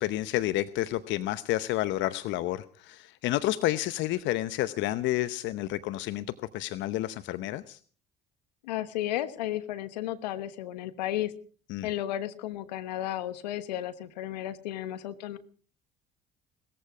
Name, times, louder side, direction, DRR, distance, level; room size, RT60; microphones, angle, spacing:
voice 1, 0.0-6.3 6.5-7.8 11.7-11.9, left 15 dB, 65° left, 14 dB, 0.8 m, -30 dB
voice 2, 8.6-11.3 11.8-15.4, left 13 dB, 80° left, 12 dB, 1.2 m, -33 dB
19.0 x 14.5 x 4.9 m, 0.43 s
hypercardioid pair, 60°, 21 cm